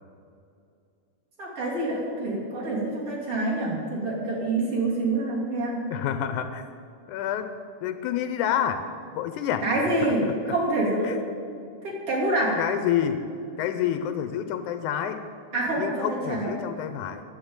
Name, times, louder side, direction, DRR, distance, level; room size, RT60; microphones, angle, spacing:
voice 1, 1.4-5.8 9.6-11.2 11.8-12.6 15.5-16.5, right 2 dB, 45° right, -5 dB, 3.8 m, -26 dB
voice 2, 5.9-6.6 7.1-7.5 7.8-8.9 9.2-9.7 10.0-10.3 11.0-11.2 12.6-13.3 13.6-15.2 15.8-17.2, left 10 dB, 80° left, 9 dB, 2.0 m, -28 dB
11.0 x 7.9 x 8.7 m, 2.4 s
omnidirectional pair, 3.7 m